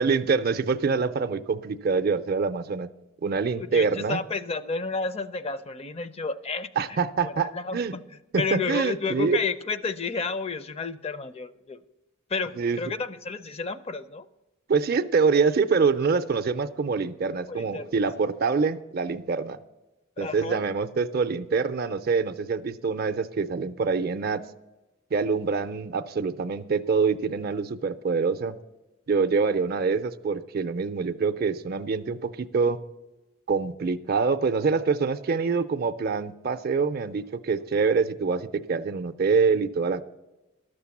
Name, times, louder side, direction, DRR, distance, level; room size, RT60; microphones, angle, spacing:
voice 1, 0.0-2.9 3.2-4.2 6.8-8.0 8.3-9.4 12.6-12.8 14.7-19.6 20.2-24.4 25.1-28.6 29.1-32.8 33.5-40.0, right 5 dB, 50° right, 10 dB, 0.5 m, -25 dB
voice 2, 3.6-7.0 7.2-8.0 8.4-11.8 12.3-14.3 17.5-17.9 20.2-20.6, left 4 dB, 30° left, 13 dB, 0.5 m, -31 dB
12.5 x 6.7 x 7.1 m, 1.1 s
head